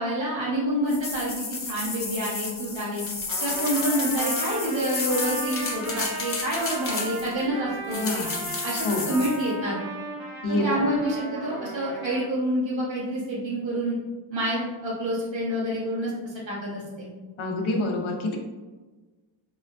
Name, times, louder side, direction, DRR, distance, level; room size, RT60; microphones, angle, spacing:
voice 1, 0.0-3.0 3.4-8.2 8.6-9.8 10.5-14.0 14.3-17.1, right 1 dB, 70° right, -7 dB, 1.4 m, -28 dB
sound 1, 0.9-7.4 7.9-9.4, left 3 dB, 30° left, 0.6 m, -32 dB
Trumpet, 3.3-12.3, right 2 dB, 50° right, 0.8 m, -36 dB
voice 2, 7.9-8.5 8.8-9.1 10.4-10.8 17.4-18.4, left 1 dB, 75° left, 1 dB, 0.8 m, -27 dB
4.7 x 2.2 x 2.5 m, 1.3 s
wide cardioid pair, 105°, 48 cm